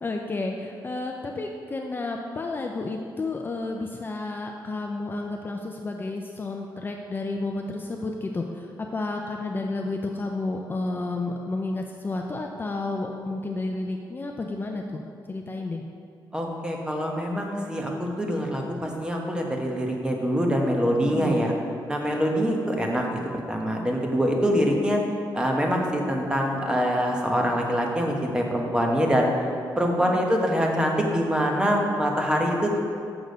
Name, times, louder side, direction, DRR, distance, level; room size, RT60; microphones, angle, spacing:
voice 1, 0.0-15.0 15.3-15.8 21.0-21.4 29.9-30.3, left 2 dB, 25° left, 2 dB, 0.4 m, -31 dB
voice 2, 16.3-21.5 21.9-23.2 23.5-25.0 25.3-29.3 29.8-32.8, equal, 10° right, 0 dB, 1.0 m, -24 dB
6.8 x 6.2 x 5.1 m, 2.4 s
wide cardioid pair, 130°, 8 cm